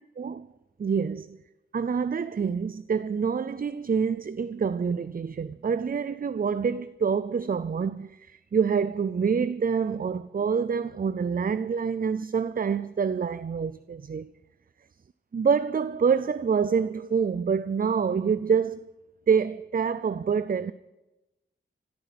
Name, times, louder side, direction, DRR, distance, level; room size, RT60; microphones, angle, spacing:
voice 1, 0.2-0.5 0.8-1.4 1.7-14.3 15.3-18.9 19.3-20.7, right 6 dB, 45° right, 0.5 m, -26 dB
15.0 x 13.0 x 6.0 m
wide cardioid pair, 65°, 20 cm